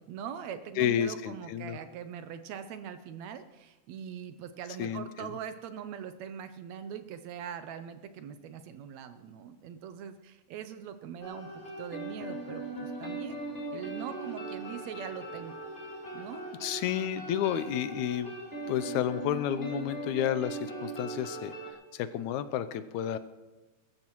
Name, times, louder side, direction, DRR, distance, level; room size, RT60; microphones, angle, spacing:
voice 1, 0.0-15.6 16.1-16.4, right 8 dB, 75° right, 10 dB, 1.8 m, -42 dB
voice 2, 0.8-1.8 4.8-5.3 16.6-18.3 18.6-21.5 21.9-23.2, left 10 dB, 80° left, 13 dB, 2.0 m, -31 dB
sound 1, 11.2-21.7, right 2 dB, 20° left, 2.1 m, -40 dB
21.5 x 13.0 x 3.1 m, 1.2 s
omnidirectional pair, 3.4 m